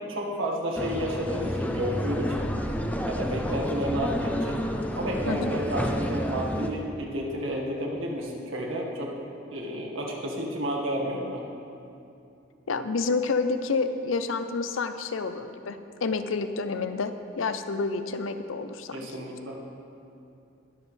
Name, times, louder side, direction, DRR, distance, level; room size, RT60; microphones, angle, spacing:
voice 1, 0.1-2.5 3.1-4.6 5.0-9.1 9.5-11.4 18.9-19.6, equal, 85° right, -1 dB, 1.7 m, -31 dB
sound 1, 0.8-6.7, equal, 10° left, 0.5 m, -30 dB
voice 2, 12.7-19.0, left 4 dB, 90° left, 10 dB, 0.6 m, -29 dB
20.5 x 7.3 x 3.3 m, 2.7 s
head